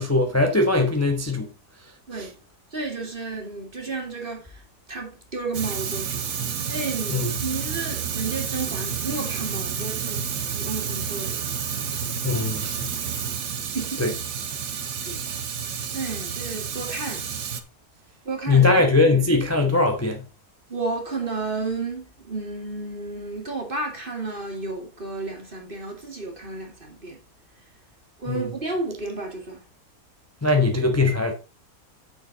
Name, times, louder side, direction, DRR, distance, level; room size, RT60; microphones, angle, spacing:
voice 1, 0.0-1.5 2.2-2.3 7.1-7.3 12.2-12.9 14.0-14.1 18.5-20.2 28.3-28.5 30.4-31.3, left 3 dB, 10° left, 1.0 m, -20 dB
voice 2, 2.7-4.6 4.9-6.2 6.7-10.2 10.5-11.4 13.7-14.0 14.7-15.3 15.9-17.3 18.2-18.8 20.7-27.2 28.2-29.6, right 3 dB, 30° right, 2.4 m, -32 dB
Fire, 5.5-17.6, right 7 dB, 75° right, 1.6 m, -30 dB
9.1 x 6.9 x 4.0 m
omnidirectional pair, 1.7 m